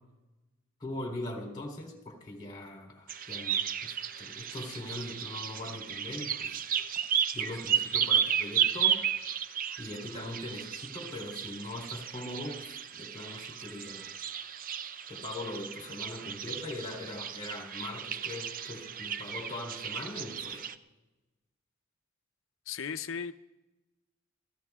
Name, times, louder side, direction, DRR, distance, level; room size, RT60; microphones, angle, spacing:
voice 1, 0.8-6.6 7.3-9.0 9.8-14.1 15.1-20.6, left 1 dB, 20° left, 0 dB, 3.5 m, -41 dB
sound 1, 3.1-20.7, right 8 dB, 45° right, 0.5 m, -34 dB
voice 2, 22.7-23.3, left 6 dB, 70° left, 11 dB, 0.6 m, -36 dB
28.5 x 16.5 x 2.4 m, 1.0 s
head